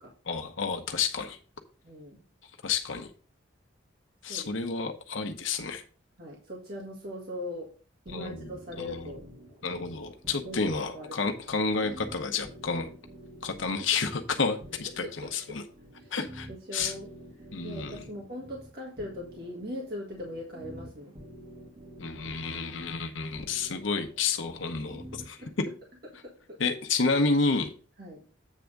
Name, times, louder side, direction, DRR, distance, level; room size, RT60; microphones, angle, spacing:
voice 1, 0.3-1.4 2.6-3.1 4.2-5.8 8.1-8.5 8.8-9.0 9.6-12.9 13.4-15.6 16.1-16.9 17.5-18.0 22.0-25.4 26.6-27.7, left 4 dB, 75° left, 5 dB, 0.9 m, -30 dB
voice 2, 1.8-2.2 4.3-4.5 6.2-7.7 8.0-9.2 10.4-11.4 13.7-13.9 15.0-15.1 16.0-16.1 16.5-17.1 17.6-21.1 25.4-25.5 26.2-26.3 28.0-28.2, left 1 dB, 50° right, -2 dB, 1.8 m, -40 dB
sound 1, 8.1-25.5, equal, 30° right, 1.5 m, -49 dB
8.3 x 3.5 x 6.4 m, 0.38 s
head